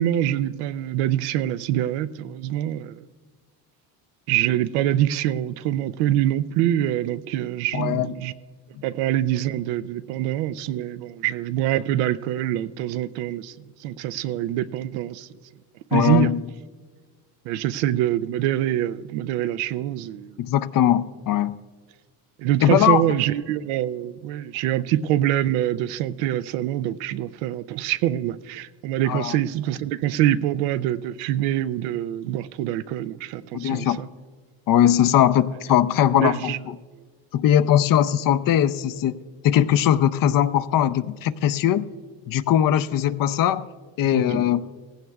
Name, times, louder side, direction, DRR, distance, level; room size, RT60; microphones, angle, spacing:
voice 1, 0.0-3.0 4.3-8.3 8.8-13.5 13.8-15.3 15.9-16.3 17.4-20.4 22.4-34.1 36.1-36.6 44.1-44.5, right 12 dB, 85° right, 0.6 m, -25 dB
voice 2, 7.7-8.1 15.9-16.4 20.4-21.6 22.6-23.0 29.1-29.4 33.5-34.0 34.7-36.5 37.3-39.1 39.4-41.8 42.3-43.7 44.0-44.6, left 11 dB, 50° left, 0.5 m, -20 dB
17.5 x 15.5 x 2.3 m
supercardioid pair, 95°, 45 cm